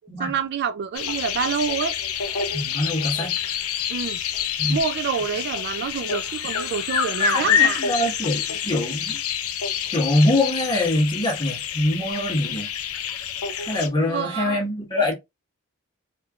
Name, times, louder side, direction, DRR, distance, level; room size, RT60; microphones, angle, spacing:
voice 1, 0.2-2.0 3.9-4.2 4.7-7.8 14.0-14.6, right 7 dB, 50° right, 0.3 m, -27 dB
sound 1, 0.9-13.9, left 8 dB, 80° left, 0.5 m, -27 dB
voice 2, 2.5-3.4 4.6-4.8 7.3-9.2 9.9-12.7 13.6-15.2, left 1 dB, 20° left, 1.6 m, -24 dB
3.3 x 3.0 x 2.3 m
head